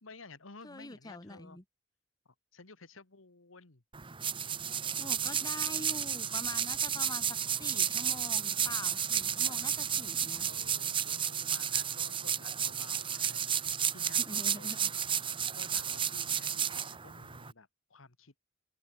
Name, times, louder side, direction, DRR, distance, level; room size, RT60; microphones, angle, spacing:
voice 1, 0.0-1.6 2.3-3.8 10.4-14.7 15.6-18.4, left 3 dB, 80° left, 1.9 m, -53 dB
voice 2, 0.6-1.6 4.6-4.7 5.0-10.5 14.1-14.9, left 2 dB, 20° left, 1.4 m, -45 dB
sound 1, 3.9-17.5, right 8 dB, 25° right, 1.0 m, -32 dB
open air
head